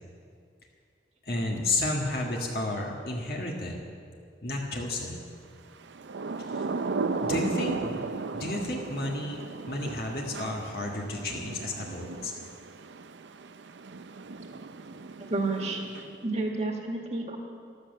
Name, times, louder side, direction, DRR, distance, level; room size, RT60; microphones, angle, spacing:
voice 1, 1.2-3.8 4.4-5.2 6.5-6.7 7.2-8.0 8.3-9.4 9.7-12.3, left 2 dB, 55° left, -1 dB, 1.7 m, -32 dB
Thunder / Rain, 5.8-16.4, right 3 dB, 85° right, 0.6 m, -36 dB
voice 2, 15.2-15.8 16.2-17.4, right 2 dB, 35° right, 2 dB, 1.8 m, -30 dB
14.0 x 13.0 x 6.7 m, 2.3 s
head